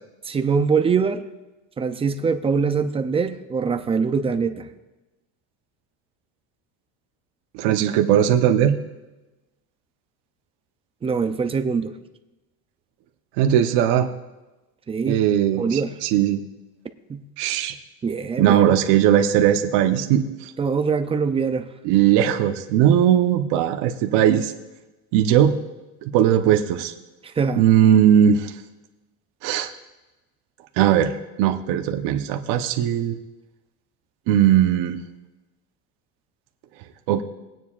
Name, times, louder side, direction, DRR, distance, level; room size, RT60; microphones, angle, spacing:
voice 1, 0.2-1.2 1.8-4.7 11.0-11.9 14.9-15.2 15.6-16.0 17.1-17.2 18.0-18.8 20.6-21.7 27.2-27.7, right 5 dB, 15° right, 8 dB, 0.4 m, -23 dB
voice 2, 7.5-8.8 13.4-14.1 15.1-16.4 17.4-17.7 18.4-20.5 21.8-24.5 25.1-25.6 26.1-26.9 27.6-28.5 29.4-29.7 30.8-31.1 31.4-33.2 34.3-35.0 37.1-37.2, right 10 dB, 65° right, 4 dB, 1.0 m, -18 dB
21.0 x 9.3 x 2.5 m, 1.1 s
cardioid pair, 150°, 44 cm